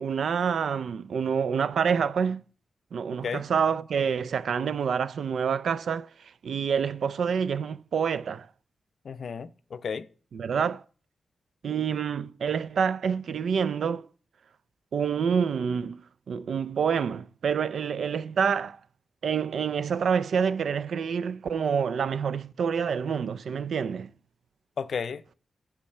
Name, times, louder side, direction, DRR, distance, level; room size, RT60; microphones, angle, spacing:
voice 1, 0.0-2.4 2.9-8.5 10.3-10.8 11.6-14.1 14.9-18.8 19.2-24.1, right 6 dB, 80° right, 0.3 m, -27 dB
voice 2, 9.0-10.1 24.8-25.3, left 6 dB, 65° left, 0.5 m, -33 dB
7.2 x 4.7 x 6.5 m
wide cardioid pair, 105°, 0 cm